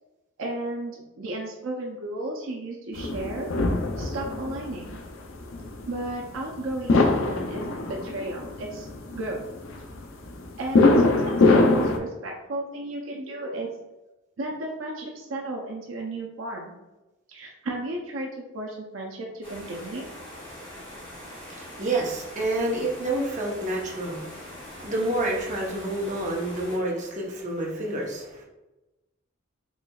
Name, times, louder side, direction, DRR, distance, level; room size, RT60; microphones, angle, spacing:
voice 1, 0.4-3.5 4.0-5.0 5.9-8.9 9.1-9.4 10.6-13.7 14.4-16.7 17.3-20.1, right 2 dB, 75° right, 0 dB, 0.5 m, -34 dB
sound 1, 2.9-12.0, left 2 dB, 75° left, 0.5 m, -23 dB
sound 2, 19.4-26.8, left 1 dB, 25° left, 1.4 m, -42 dB
voice 2, 21.2-28.4, right 1 dB, 40° right, -2 dB, 0.8 m, -29 dB
4.3 x 3.2 x 2.3 m, 1.0 s
head